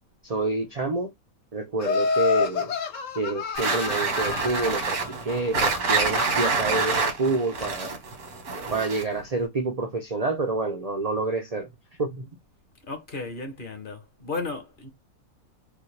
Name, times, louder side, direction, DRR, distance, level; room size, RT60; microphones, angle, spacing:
voice 1, 0.2-1.1 1.5-2.7 3.1-8.0 8.7-11.7 12.0-12.3, right 3 dB, 45° right, 0.5 m, -28 dB
Laughter, 1.8-5.0, left 5 dB, 60° left, 1.3 m, -27 dB
sound 1, 3.6-9.2, right 4 dB, 80° right, 1.9 m, -27 dB
voice 2, 12.9-14.9, left 3 dB, 40° left, 1.1 m, -34 dB
5.0 x 2.3 x 3.2 m
omnidirectional pair, 1.6 m